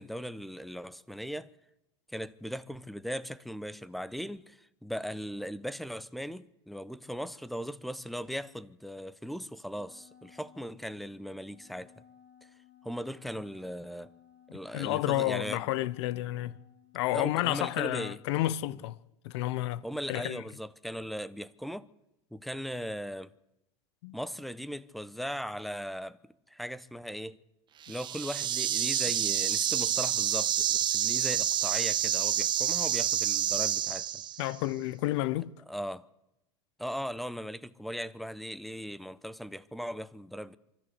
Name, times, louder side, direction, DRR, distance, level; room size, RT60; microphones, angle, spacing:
voice 1, 0.0-1.5 2.1-12.0 12.8-14.1 14.5-15.6 17.1-18.2 19.8-21.9 22.3-23.3 24.1-26.2 26.5-27.4 27.9-34.2 35.7-36.1 36.8-40.6, equal, ahead, 0.8 m, -38 dB
Wind instrument woodwind instrument, 9.7-17.8, left 9 dB, 35° left, 6.0 m, -60 dB
voice 2, 14.7-16.6 16.9-19.0 19.2-20.4 24.0-24.1 34.4-35.5, left 16 dB, 70° left, 0.9 m, -31 dB
sound 1, 27.8-34.5, right 10 dB, 30° right, 0.9 m, -28 dB
24.0 x 14.0 x 8.2 m
supercardioid pair, 115°, 15 cm